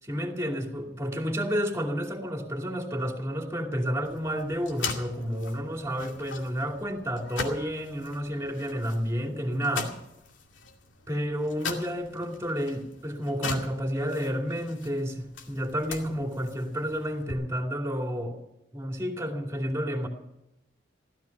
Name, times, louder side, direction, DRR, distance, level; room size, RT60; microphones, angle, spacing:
voice 1, 0.0-9.9 11.1-18.4 18.7-20.1, equal, 15° right, 2 dB, 2.6 m, -30 dB
sound 1, 4.0-17.3, left 4 dB, 90° left, 2.4 m, -40 dB
16.0 x 13.5 x 5.9 m, 0.88 s
head